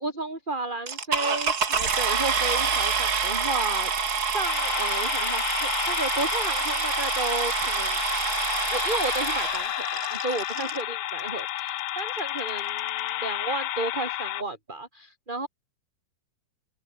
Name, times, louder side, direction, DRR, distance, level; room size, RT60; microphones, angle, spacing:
voice 1, 0.0-3.9 4.3-8.0 8.7-15.5, right 2 dB, 10° right, 6.5 m, -33 dB
sound 1, 0.9-10.8 11.6-11.7 12.2-12.3 12.5-12.8, right 5 dB, 35° right, 1.8 m, -27 dB
sound 2, 4.4-14.4, left 14 dB, 75° left, 1.6 m, -31 dB
open air
omnidirectional pair, 4.4 m